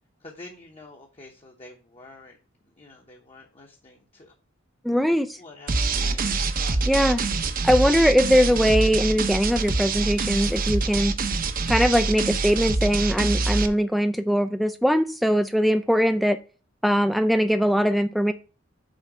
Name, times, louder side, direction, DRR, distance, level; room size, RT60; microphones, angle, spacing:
voice 1, 0.2-2.4 2.6-4.3 5.4-7.0, left 2 dB, 30° left, 0 dB, 0.9 m, -47 dB
voice 2, 4.8-5.4 6.9-7.2 7.6-11.1 11.7-16.4 16.8-18.3, equal, ahead, 9 dB, 0.3 m, -21 dB
sound 1, 5.7-13.7, right 3 dB, 45° right, 0.7 m, -25 dB
Fire, 8.5-13.0, equal, 65° left, 1.7 m, -49 dB
6.5 x 4.4 x 6.0 m, 0.36 s
head